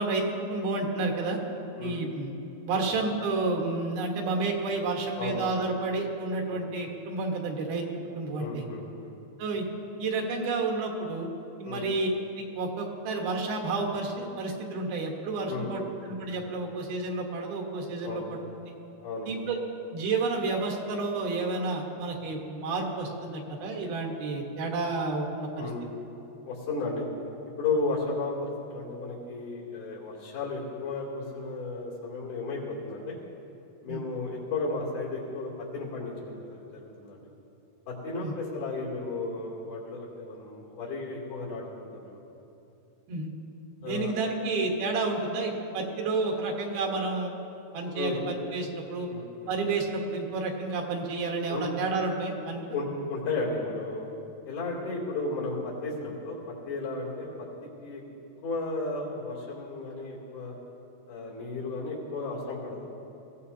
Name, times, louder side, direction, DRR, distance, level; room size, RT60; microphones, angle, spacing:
voice 1, 0.0-1.4 1.8-2.3 2.7-7.8 8.2-8.6 9.4-9.7 10.0-11.3 11.6-12.1 12.4-18.4 19.3-19.6 19.9-25.7 33.9-34.0 38.2-38.3 43.1-43.3 43.8-47.3 47.7-49.1 49.5-52.7, right 3 dB, 85° right, 1 dB, 3.3 m, -30 dB
voice 2, 8.4-9.2 11.6-11.9 15.4-15.9 18.0-18.4 19.0-19.4 25.6-25.8 26.4-27.0 27.6-33.2 33.8-37.3 37.9-42.2 43.8-44.1 47.9-48.2 49.1-49.5 51.5-51.7 52.7-54.1 54.4-58.0 58.4-60.5 61.1-62.9, left 3 dB, 80° left, -5 dB, 4.7 m, -34 dB
20.5 x 16.0 x 2.8 m, 2.8 s
omnidirectional pair, 4.3 m